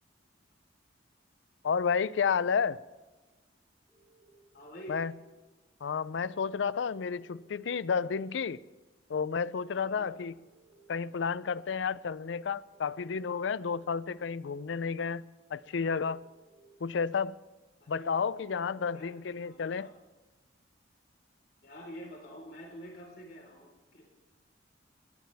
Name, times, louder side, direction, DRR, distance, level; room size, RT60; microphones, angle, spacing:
voice 1, 1.6-2.8 4.9-5.1 5.8-8.6 9.1-10.3 10.9-15.3 15.5-16.2 16.8-17.4 17.9-19.9, left 6 dB, 75° left, 0.4 m, -31 dB
sound 1, 3.9-4.9 6.8-7.8 9.8-10.7 12.7-13.7 15.6-16.6 18.5-18.9, right 3 dB, 5° left, 4.7 m, -65 dB
voice 2, 4.5-5.0 9.7-10.1 17.8-18.1 18.8-19.1 19.4-19.9 21.6-24.1, equal, 55° left, 4.0 m, -47 dB
21.0 x 18.5 x 3.4 m
head